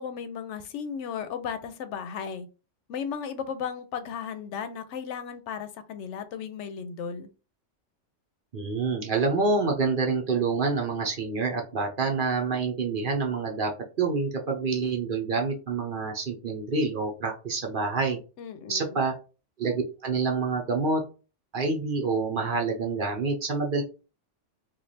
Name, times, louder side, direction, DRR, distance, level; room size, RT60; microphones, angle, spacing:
voice 1, 0.0-2.5 2.9-7.3 18.4-19.0, left 7 dB, 75° left, 0.9 m, -35 dB
voice 2, 8.5-13.7 14.0-18.2 18.7-19.1 19.6-21.0 21.5-23.8, right 4 dB, 50° right, 0.8 m, -27 dB
3.2 x 2.4 x 4.0 m
omnidirectional pair, 1.2 m